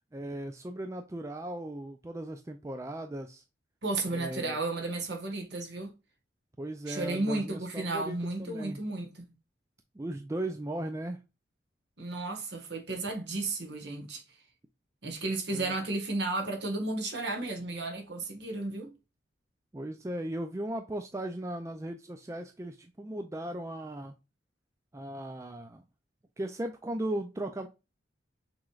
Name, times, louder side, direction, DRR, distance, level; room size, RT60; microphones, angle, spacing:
voice 1, 0.1-3.4 4.1-4.6 6.6-8.8 9.9-11.2 15.5-15.7 19.7-24.1 24.9-25.8 26.4-27.7, right 1 dB, 15° right, 0.3 m, -37 dB
voice 2, 3.8-5.9 6.9-9.3 12.0-14.2 15.0-18.9, right 2 dB, 60° right, 1.4 m, -33 dB
6.1 x 3.1 x 2.3 m
head